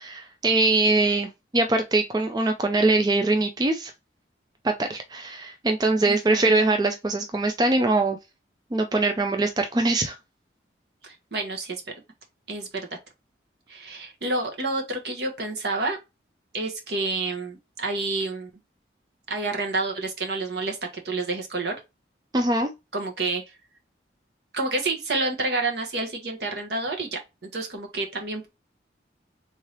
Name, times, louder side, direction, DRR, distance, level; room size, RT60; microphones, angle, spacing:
voice 1, 0.0-3.9 4.6-8.2 8.7-10.2 22.3-22.7, right 2 dB, 20° right, 0.3 m, -22 dB
voice 2, 6.1-6.5 11.0-11.8 12.5-13.0 13.7-16.0 16.5-18.5 19.3-21.8 22.9-23.4 24.5-28.5, right 3 dB, 70° right, 1.1 m, -29 dB
3.6 x 3.2 x 2.8 m
head